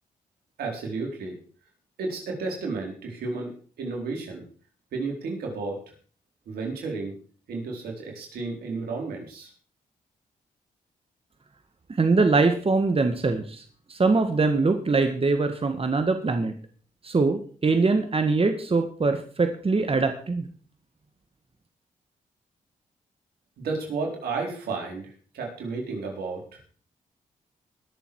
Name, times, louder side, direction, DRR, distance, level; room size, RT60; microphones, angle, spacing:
voice 1, 0.6-1.4 2.0-3.5 3.8-4.4 4.9-5.8 6.5-7.2 7.5-9.5 23.6-26.6, right 3 dB, 85° right, 0 dB, 4.2 m, -32 dB
voice 2, 12.0-13.6 13.9-16.5 17.0-20.5, right 3 dB, 35° right, 7 dB, 1.7 m, -23 dB
21.0 x 7.2 x 4.8 m, 0.43 s
supercardioid pair, 50°, 16 cm